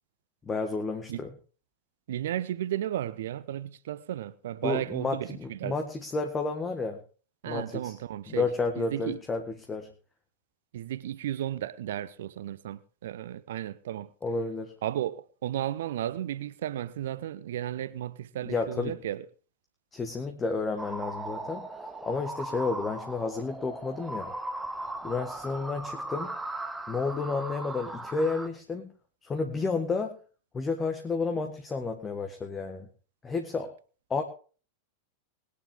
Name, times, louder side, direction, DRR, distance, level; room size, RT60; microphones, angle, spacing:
voice 1, 0.4-1.3 4.6-7.0 7.5-7.9 8.3-9.4 9.7-9.9 14.2-14.7 18.4-19.0 19.9-24.3 25.0-26.4 26.9-28.9 29.2-30.2 30.5-32.9 33.2-33.7 34.1-34.2, left 4 dB, 20° left, 1.6 m, -31 dB
voice 2, 2.1-5.8 7.4-8.5 8.8-9.2 10.7-14.1 14.8-19.2, right 12 dB, 60° right, 0.8 m, -34 dB
sound 1, 20.8-28.5, right 2 dB, 5° right, 1.1 m, -38 dB
21.0 x 9.9 x 3.6 m
figure-of-eight pair, 90°, 0 cm